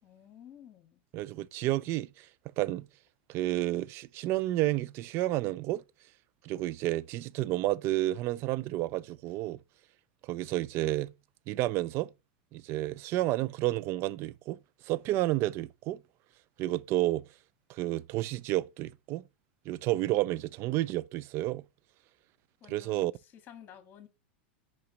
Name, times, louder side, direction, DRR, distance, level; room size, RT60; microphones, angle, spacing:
voice 1, 0.0-1.0 20.3-20.5 22.6-23.1 23.3-24.1, left 9 dB, 35° left, 1.9 m, -52 dB
voice 2, 1.1-2.3 2.6-2.9 3.3-5.8 6.4-9.6 10.2-11.1 11.5-12.1 12.5-14.6 14.8-16.0 16.6-17.2 17.7-19.2 19.7-21.6 22.7-23.1, right 16 dB, 45° right, 0.4 m, -30 dB
5.6 x 5.2 x 5.2 m
hypercardioid pair, 110°, 6 cm